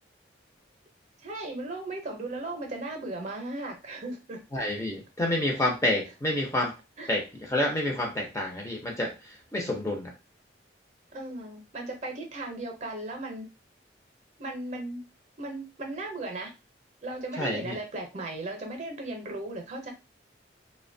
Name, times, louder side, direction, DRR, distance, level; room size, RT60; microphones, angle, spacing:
voice 1, 1.2-4.4 5.5-5.6 7.0-7.1 11.1-13.5 14.4-15.0 15.4-16.5 17.0-19.9, right 2 dB, 40° right, 3 dB, 0.6 m, -36 dB
voice 2, 4.5-6.7 7.1-10.1 17.4-17.8, left 1 dB, 15° left, 0 dB, 0.5 m, -29 dB
2.7 x 2.1 x 2.6 m, 0.28 s
head